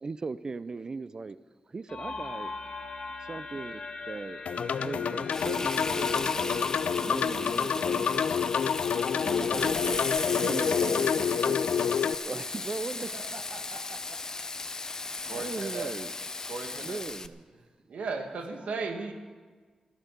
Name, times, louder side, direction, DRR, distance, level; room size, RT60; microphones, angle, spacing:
voice 1, 0.0-1.4 1.7-2.5 3.3-4.4 4.8-6.7 7.0-8.3 9.2-10.1 10.4-11.6 12.2-13.2 15.3-16.1 16.8-17.4, right 4 dB, 35° right, 16 dB, 0.4 m, -38 dB
sound 1, 1.9-9.5, left 3 dB, 50° left, 1.7 m, -41 dB
sound 2, 4.5-12.2, left 7 dB, 85° left, 0.4 m, -28 dB
Frying (food), 5.3-17.3, left 3 dB, 25° left, 0.5 m, -36 dB
voice 2, 12.6-14.3 15.0-15.8 16.4-16.6 16.9-19.0, right 2 dB, 55° right, 3 dB, 1.4 m, -50 dB
voice 3, 15.2-15.9 16.4-17.0 17.9-19.1, right 4 dB, 85° right, 5 dB, 1.6 m, -36 dB
14.0 x 13.0 x 6.7 m, 1.5 s
wide cardioid pair, 155°, 2 cm